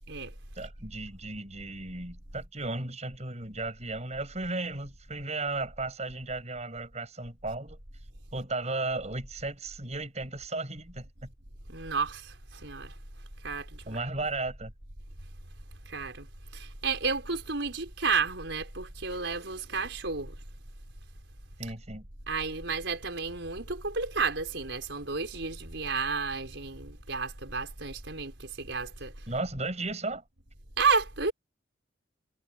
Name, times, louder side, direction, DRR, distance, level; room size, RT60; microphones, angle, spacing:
voice 1, 0.6-7.8 8.3-11.3 13.9-14.7 21.6-22.0 29.3-30.2, right 2 dB, 35° right, 7.1 m, -35 dB
voice 2, 11.7-13.0 13.4-14.0 15.8-16.3 16.5-20.4 22.3-29.3 30.8-31.3, right 4 dB, 70° right, 5.0 m, -32 dB
head